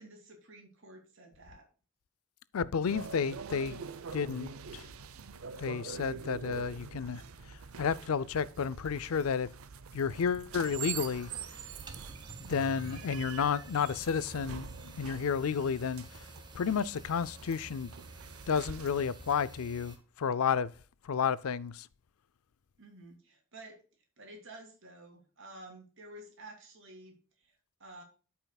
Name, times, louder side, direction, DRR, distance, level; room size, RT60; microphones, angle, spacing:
voice 1, 0.0-1.7 22.8-23.8 24.2-28.0, right 2 dB, 60° right, 2.8 m, -51 dB
voice 2, 2.5-3.8 4.1-4.8 5.6-7.2 7.8-9.5 9.9-11.3 12.5-14.7 15.0-16.0 16.5-17.9 18.5-20.7 21.1-21.9, left 6 dB, 85° left, 0.5 m, -31 dB
sound 1, 2.8-19.3, right 6 dB, 85° right, 0.6 m, -45 dB
sound 2, 10.6-20.0, right 1 dB, 20° right, 1.1 m, -50 dB
13.0 x 5.7 x 2.3 m
head